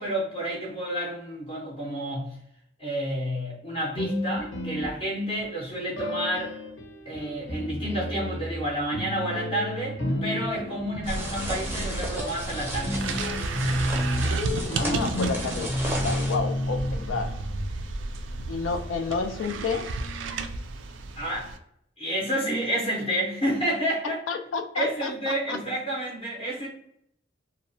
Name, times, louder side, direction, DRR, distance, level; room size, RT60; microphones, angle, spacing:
voice 1, 0.0-2.4 2.8-6.5 7.1-13.4 21.2-21.5 22.0-24.2 24.7-26.7, right 1 dB, 30° left, 0.6 m, -30 dB
sound 1, 3.9-5.4 5.9-18.2, left 1 dB, 70° left, 0.8 m, -32 dB
sound 2, 11.0-21.6, right 3 dB, 75° right, 0.3 m, -33 dB
sound 3, 11.1-16.4, right 1 dB, 10° right, 0.5 m, -34 dB
voice 2, 14.7-17.4 18.5-20.0 24.3-25.6, left 4 dB, 90° left, 0.4 m, -30 dB
2.8 x 2.1 x 2.5 m
head